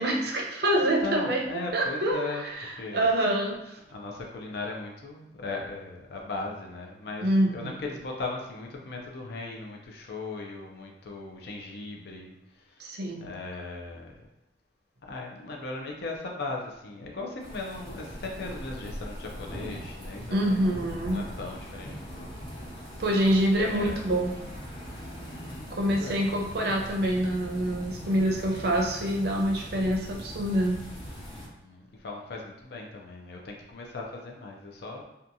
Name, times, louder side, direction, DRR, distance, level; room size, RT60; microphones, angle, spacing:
voice 1, 0.0-1.4 1.7-3.8 7.2-7.7 12.8-13.3 20.3-21.2 23.0-24.3 25.7-30.8, right 1 dB, 60° right, 0 dB, 0.5 m, -26 dB
voice 2, 1.0-3.1 3.9-7.3 7.5-12.9 13.2-14.3 15.0-22.3 22.9-23.0 23.6-24.2 25.3-26.2 31.4-35.0, left 3 dB, 65° left, 0 dB, 0.4 m, -38 dB
sound 1, 17.4-31.5, equal, 30° left, 0.8 m, -41 dB
2.8 x 2.3 x 2.5 m, 0.91 s
head